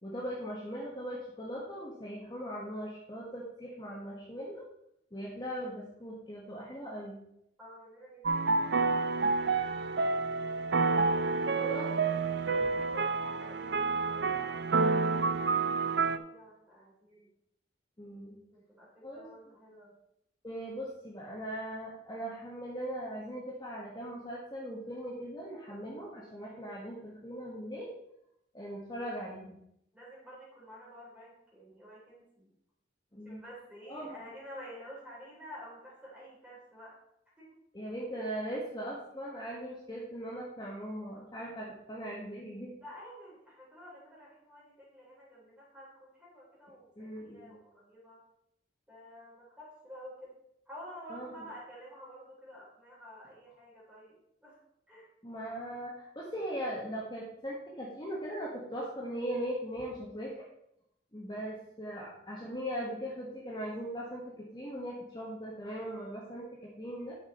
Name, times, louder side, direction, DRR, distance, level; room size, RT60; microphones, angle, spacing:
voice 1, 0.0-4.6 5.1-7.2 11.6-11.9 18.0-18.3 19.0-19.3 20.4-27.9 28.5-29.6 33.1-33.4 33.9-34.2 37.7-42.7 47.0-47.5 51.1-51.3 55.2-60.3 61.1-67.2, equal, 25° left, -4 dB, 1.4 m, -39 dB
voice 2, 7.6-8.8 11.1-12.0 12.5-17.3 18.5-19.9 29.9-32.5 33.2-37.0 37.4-37.6 42.8-48.2 48.9-50.3 50.7-54.6 54.9-55.1 61.4-61.7, equal, 5° right, -6 dB, 3.8 m, -50 dB
sound 1, 8.2-16.2, right 4 dB, 65° right, 0.5 m, -29 dB
9.7 x 6.2 x 4.3 m, 0.78 s
head